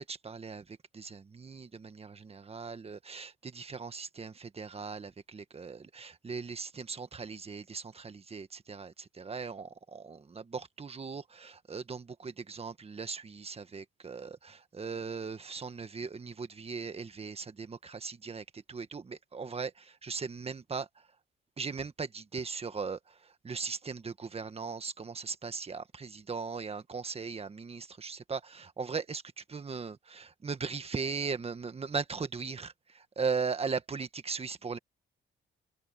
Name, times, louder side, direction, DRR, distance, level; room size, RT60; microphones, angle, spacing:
voice 1, 0.0-20.9 21.6-34.8, right 5 dB, 30° right, 1.6 m, -38 dB
cardioid pair, 90°, 20 cm